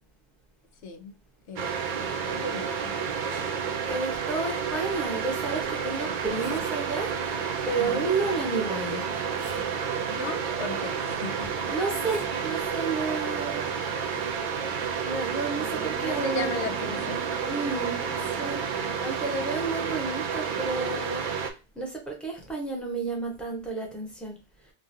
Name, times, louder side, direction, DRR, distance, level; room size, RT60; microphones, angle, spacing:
voice 1, 0.8-1.2 1.5-3.4 7.8-8.1 10.1-11.7 16.0-17.3, left 3 dB, 85° left, 0.9 m, -37 dB
sound 1, 1.6-21.5, right 6 dB, 55° right, 0.6 m, -30 dB
voice 2, 3.9-7.1 7.7-9.0 11.7-13.7 15.0-16.6 17.5-18.0 18.4-18.6 19.0-21.2 21.8-24.4, right 3 dB, ahead, 0.8 m, -31 dB
sound 2, 5.8-6.8 8.5-9.9 11.4-12.6 14.1-14.3, left 1 dB, 30° left, 1.2 m, -48 dB
sound 3, 8.6-11.6 14.4-19.6 19.9-20.0, right 4 dB, 80° right, 1.5 m, -47 dB
3.1 x 2.4 x 2.6 m
omnidirectional pair, 1.1 m